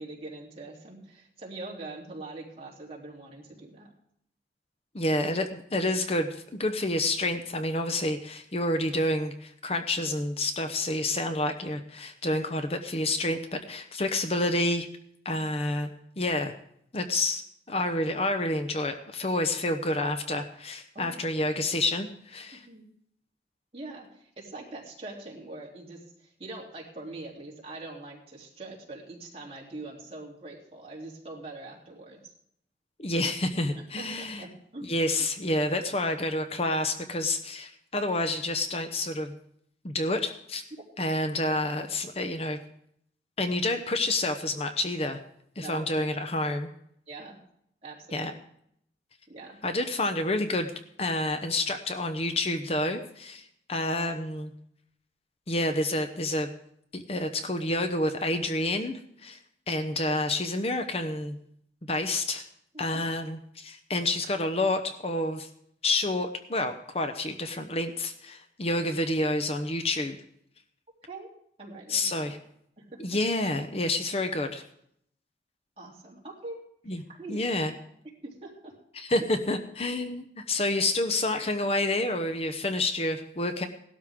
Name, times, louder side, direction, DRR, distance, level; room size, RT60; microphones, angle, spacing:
voice 1, 0.0-3.9 20.9-21.2 22.7-22.9 23.7-32.2 34.0-34.9 45.6-46.0 47.1-47.4 47.8-48.4 49.3-49.6 62.7-63.1 71.1-71.3 71.6-72.3 72.8-73.0 75.8-76.6 76.9-77.7 78.2-78.8 79.2-79.3, right 2 dB, 35° right, -3 dB, 3.1 m, -43 dB
voice 2, 4.9-14.9 15.2-16.5 16.9-17.4 17.7-22.7 33.0-34.5 34.8-39.4 39.8-40.6 41.0-42.6 43.4-45.2 45.6-46.7 48.1-48.3 49.6-50.7 51.0-54.5 55.5-56.5 56.9-59.4 59.7-61.3 61.9-62.4 62.8-65.5 65.8-70.2 71.9-72.4 73.0-74.6 76.9-77.0 77.3-77.7 79.0-83.7, left 2 dB, 35° left, 7 dB, 0.8 m, -29 dB
17.5 x 12.5 x 3.6 m, 0.70 s
head